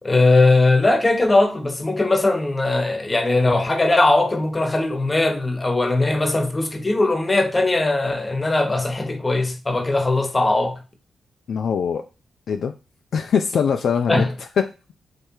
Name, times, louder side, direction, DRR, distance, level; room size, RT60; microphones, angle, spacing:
voice 1, 0.0-10.8 14.1-14.3, left 2 dB, 30° left, 1.0 m, -19 dB
voice 2, 11.5-12.0 12.5-12.7 13.1-14.5, left 6 dB, 70° left, 0.3 m, -22 dB
3.4 x 3.2 x 4.4 m
hypercardioid pair, 40°, 0 cm